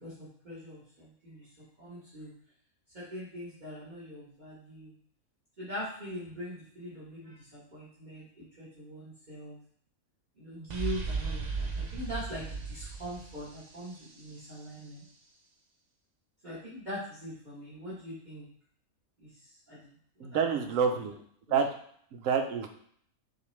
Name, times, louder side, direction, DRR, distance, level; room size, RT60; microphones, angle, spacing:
voice 1, 0.0-1.5 1.8-2.3 2.9-4.9 5.6-9.6 10.4-15.0 16.4-18.5 19.2-19.9 20.2-20.6 20.9-21.0 21.5-21.6, equal, 35° right, -9 dB, 1.5 m, -42 dB
sound 1, 10.7-14.5, right 4 dB, 50° right, 0.5 m, -36 dB
voice 2, 20.2-21.2 21.5-21.7 22.1-22.7, right 6 dB, 70° right, 5 dB, 1.0 m, -28 dB
6.5 x 2.5 x 3.2 m, 0.62 s
omnidirectional pair, 1.5 m